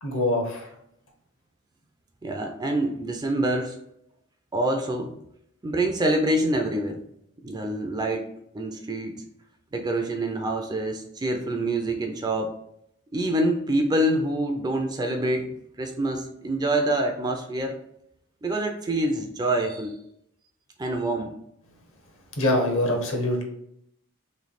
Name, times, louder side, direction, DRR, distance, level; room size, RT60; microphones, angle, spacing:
voice 1, 0.0-0.7 22.4-23.4, left 1 dB, 60° left, 2 dB, 1.0 m, -24 dB
voice 2, 2.2-3.8 4.5-5.1 5.6-7.0 7.4-9.2 9.7-12.5 13.1-15.5 15.8-17.8 18.4-20.0 20.8-21.3, right 1 dB, 20° right, 4 dB, 0.4 m, -26 dB
3.2 x 3.1 x 4.0 m, 0.74 s
head